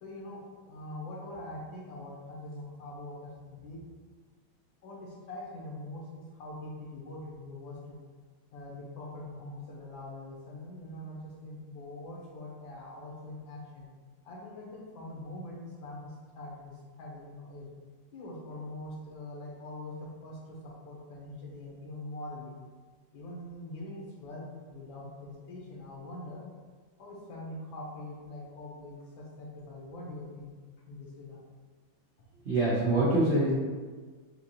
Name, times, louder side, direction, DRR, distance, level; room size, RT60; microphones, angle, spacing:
voice 1, 0.0-3.8 4.8-8.0 8.5-13.9 14.2-17.7 18.1-22.5 23.1-26.4 27.0-30.5 30.9-31.4, left 1 dB, 75° left, -3 dB, 1.7 m, -43 dB
voice 2, 32.4-33.5, right 2 dB, 60° right, -8 dB, 0.7 m, -25 dB
6.3 x 2.5 x 2.8 m, 1.5 s
omnidirectional pair, 2.1 m